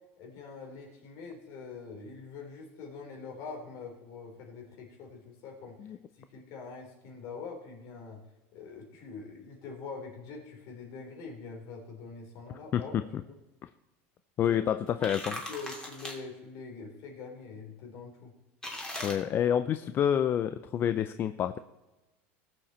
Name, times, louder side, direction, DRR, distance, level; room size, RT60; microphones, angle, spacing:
voice 1, 0.2-8.2 8.5-12.9 13.2-13.4 14.5-14.6 15.0-18.3, left 4 dB, 55° left, 1 dB, 3.7 m, -44 dB
voice 2, 12.7-13.2 13.6-13.7 14.4-15.4 19.0-21.6, left 9 dB, 35° left, 11 dB, 0.5 m, -28 dB
sound 1, 14.9-16.2 18.6-19.1, left 1 dB, 10° left, 2.9 m, -39 dB
18.5 x 7.5 x 4.3 m, 1.1 s
supercardioid pair, 125°, 6 cm